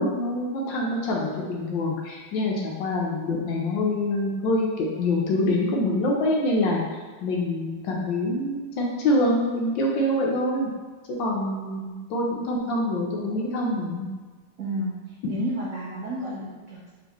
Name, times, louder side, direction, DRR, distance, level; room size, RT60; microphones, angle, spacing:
voice 1, 0.0-6.8 7.2-10.7 11.2-14.1, left 1 dB, 70° left, -2 dB, 1.3 m, -25 dB
voice 2, 14.6-16.9, right 1 dB, 80° right, -5 dB, 0.7 m, -31 dB
4.1 x 3.5 x 3.0 m, 1.4 s
omnidirectional pair, 2.3 m